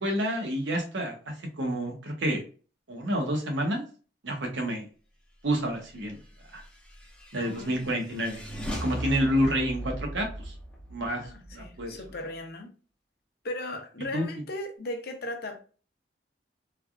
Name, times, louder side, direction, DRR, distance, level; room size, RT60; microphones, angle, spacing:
voice 1, 0.0-2.4 2.9-3.8 4.2-4.9 5.4-6.2 6.5-6.6 7.3-8.4 8.8-10.5 10.9-11.2 11.5-12.0 14.1-14.2, equal, 80° right, 0.8 m, -29 dB
sound 1, 6.5-12.2, equal, 5° left, 0.6 m, -38 dB
voice 2, 7.3-7.9 11.2-12.7 13.4-15.6, left 1 dB, 55° left, 0.6 m, -37 dB
3.3 x 2.3 x 2.2 m
head